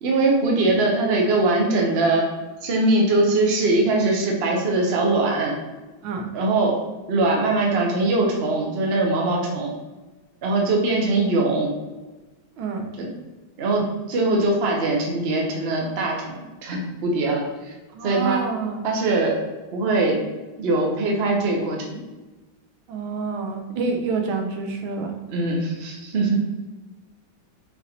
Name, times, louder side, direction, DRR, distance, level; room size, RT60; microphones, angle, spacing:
voice 1, 0.0-2.3 2.6-5.5 6.3-6.8 7.1-9.7 10.4-11.7 13.0-13.1 13.6-17.7 18.0-18.4 18.8-19.4 19.7-20.2 20.6-22.0 25.3-26.4, right 2 dB, 60° right, -1 dB, 0.6 m, -21 dB
voice 2, 17.9-18.8 22.9-25.1, right 4 dB, 85° right, 3 dB, 1.5 m, -27 dB
4.4 x 4.1 x 2.8 m, 1.1 s
omnidirectional pair, 2.2 m